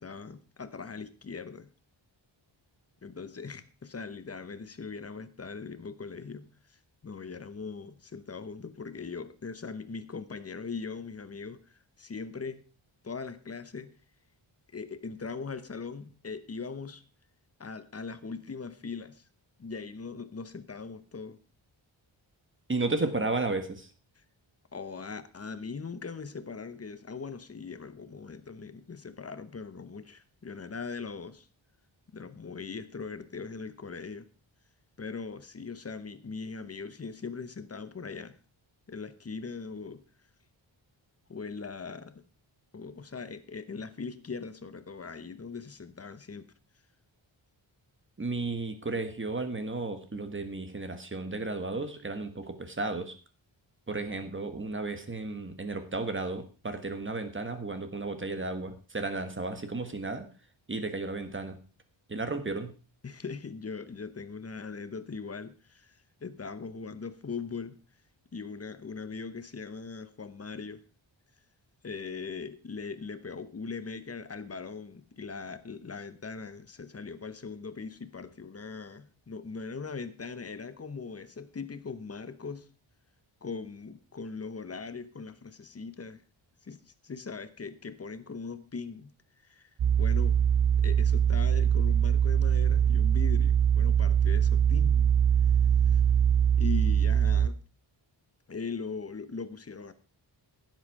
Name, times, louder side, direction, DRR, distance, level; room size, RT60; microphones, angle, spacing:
voice 1, 0.0-1.7 3.0-12.6 13.0-13.9 14.7-17.0 17.6-19.2 19.6-21.4 24.2-24.3 24.7-31.5 32.1-34.3 35.0-38.4 38.9-40.0 41.3-42.2 42.7-46.5 63.0-67.8 68.3-70.8 71.8-82.7 83.4-86.2 86.6-89.1 89.4-89.7 90.0-90.4 90.8-95.2 95.9-96.0 96.6-97.6 98.5-99.9, left 5 dB, 30° left, 12 dB, 1.0 m, -40 dB
voice 2, 22.7-23.9 48.2-53.1 53.9-60.3 60.7-61.6 62.1-62.7, right 3 dB, 25° right, 8 dB, 1.4 m, -33 dB
sound 1, 89.8-97.5, right 8 dB, 45° right, 0.5 m, -23 dB
16.0 x 7.7 x 4.7 m, 0.35 s
wide cardioid pair, 175°, 48 cm